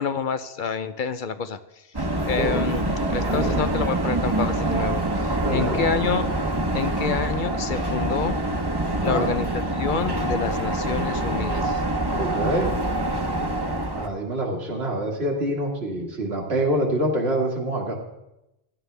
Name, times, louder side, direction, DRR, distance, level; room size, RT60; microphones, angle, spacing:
voice 1, 0.0-1.6 2.2-2.8 3.1-6.3 6.7-8.3 9.0-9.5 9.7-11.8, left 6 dB, 55° left, 11 dB, 0.7 m, -28 dB
sound 1, 1.9-14.1, right 1 dB, 25° right, 1.1 m, -25 dB
voice 2, 5.4-5.8 8.9-9.3 12.2-12.7 13.9-18.0, right 1 dB, 80° right, 0 dB, 2.4 m, -26 dB
16.0 x 11.0 x 3.4 m, 0.92 s
omnidirectional pair, 1.1 m